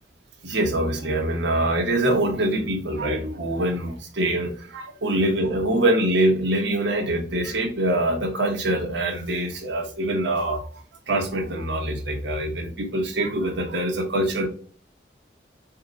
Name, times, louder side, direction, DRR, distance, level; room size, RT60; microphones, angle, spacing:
voice 1, 0.4-10.7 11.1-14.5, right 1 dB, 85° right, 2 dB, 1.2 m, -24 dB
4.4 x 2.9 x 3.8 m, 0.42 s
head